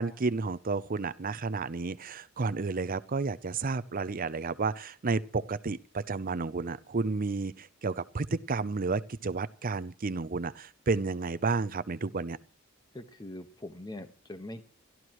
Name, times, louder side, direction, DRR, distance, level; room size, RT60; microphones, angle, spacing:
voice 1, 0.0-12.4, right 4 dB, 40° right, 15 dB, 0.6 m, -31 dB
voice 2, 12.9-14.6, left 1 dB, 20° left, 8 dB, 1.3 m, -42 dB
29.0 x 13.0 x 3.1 m, 0.40 s
head